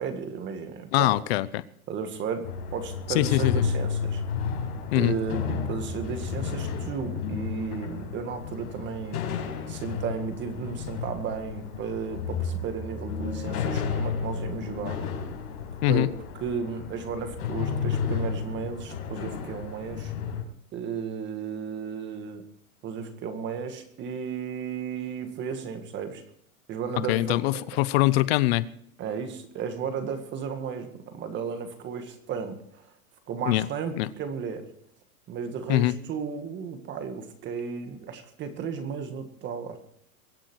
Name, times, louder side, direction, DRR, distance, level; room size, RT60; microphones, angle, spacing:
voice 1, 0.0-1.1 1.9-4.2 4.9-15.0 15.9-16.1 16.4-20.1 20.7-22.4 22.8-26.2 26.7-27.6 29.0-32.9 33.3-34.7 35.3-39.8, right 6 dB, 25° right, 8 dB, 1.8 m, -34 dB
voice 2, 0.9-1.6 3.1-3.6 4.9-5.1 15.8-16.1 27.1-28.7 33.5-33.7 34.0-34.1 35.7-36.0, left 17 dB, 45° left, 18 dB, 0.8 m, -23 dB
sound 1, 2.4-20.4, left 6 dB, 75° left, 5.3 m, -32 dB
23.0 x 8.9 x 4.6 m, 0.67 s
supercardioid pair, 150°, 44 cm